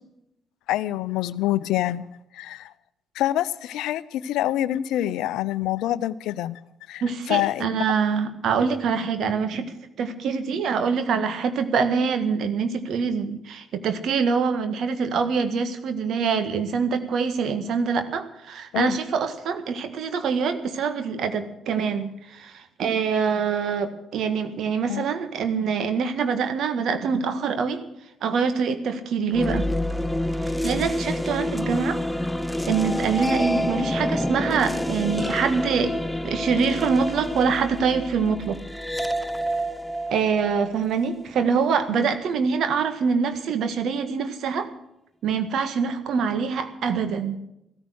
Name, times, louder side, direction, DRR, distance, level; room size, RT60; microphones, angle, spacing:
voice 1, 0.7-2.1 2.3-2.7 3.1-6.6 6.9-7.7 18.7-19.0 24.9-25.0, left 13 dB, 75° left, 17 dB, 0.6 m, -26 dB
voice 2, 7.0-27.8 28.2-29.7 30.4-32.0 32.7-35.9 36.2-38.6 40.1-44.7 45.2-47.4, right 5 dB, 65° right, 10 dB, 1.7 m, -25 dB
sound 1, 29.3-41.5, left 1 dB, 5° left, 0.8 m, -28 dB
15.5 x 14.0 x 6.4 m, 0.82 s
hypercardioid pair, 45°, 0 cm